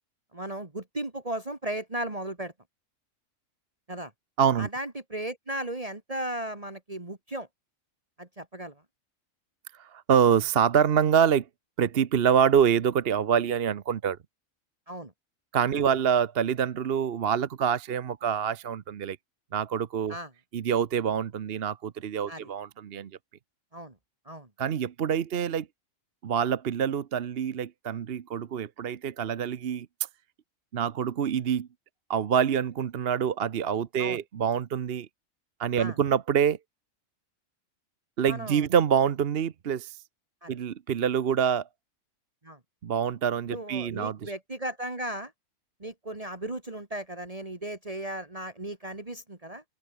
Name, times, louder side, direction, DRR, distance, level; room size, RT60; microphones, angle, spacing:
voice 1, 0.3-2.5 3.9-4.1 4.6-7.5 8.2-8.7 14.9-15.1 15.7-15.8 20.1-20.3 22.3-22.4 23.7-23.9 24.3-24.5 34.0-34.2 35.8-36.0 38.3-38.6 40.4-40.5 42.4-42.6 43.5-45.3 45.8-49.6, right 1 dB, 25° right, 2.6 m, -36 dB
voice 2, 4.4-4.7 9.8-11.5 11.8-14.2 15.5-19.2 19.5-20.2 20.5-23.1 24.6-25.7 26.2-29.9 30.7-31.7 32.1-35.1 35.6-36.6 38.2-40.0 40.5-41.7 42.8-44.3, right 8 dB, 50° right, 0.9 m, -26 dB
open air
omnidirectional pair, 1.4 m